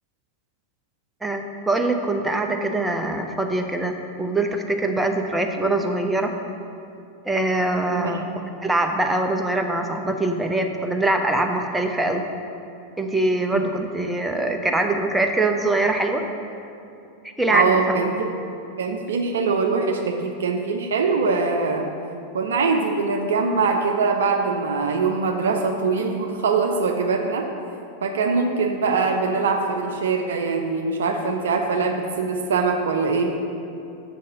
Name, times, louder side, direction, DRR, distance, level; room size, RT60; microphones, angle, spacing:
voice 1, 1.2-6.3 7.3-8.3 8.6-12.2 13.0-16.2 17.4-18.0, right 2 dB, 5° right, 4 dB, 0.7 m, -23 dB
voice 2, 7.9-8.2 13.5-13.6 17.5-18.1 18.8-21.9 22.3-27.5 28.0-33.3, right 4 dB, 65° right, 3 dB, 0.6 m, -22 dB
6.1 x 5.5 x 6.5 m, 2.6 s
figure-of-eight pair, 90°, 0 cm